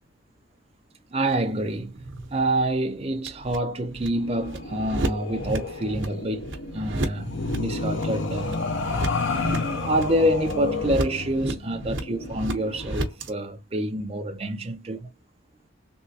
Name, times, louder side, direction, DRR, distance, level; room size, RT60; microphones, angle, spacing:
voice 1, 1.1-2.0 2.3-8.6 9.4-15.1, right 1 dB, 30° right, 0.5 m, -27 dB
sound 1, 1.3-13.3, right 1 dB, 65° right, 0.9 m, -34 dB
sound 2, 4.1-13.1, left 3 dB, 65° left, 0.6 m, -31 dB
3.5 x 3.0 x 2.7 m
head